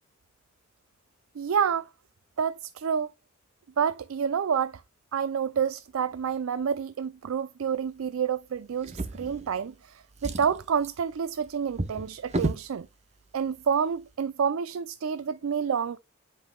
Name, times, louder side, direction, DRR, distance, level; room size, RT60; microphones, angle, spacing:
voice 1, 1.4-1.9 2.4-3.1 3.8-4.7 5.1-12.9 13.3-16.0, right 7 dB, 85° right, 0.4 m, -28 dB
Drawer open or close, 8.8-9.8 10.1-12.7 13.6-13.7 14.1-14.2, right 2 dB, 35° right, 0.7 m, -34 dB
9.8 x 5.5 x 2.2 m
head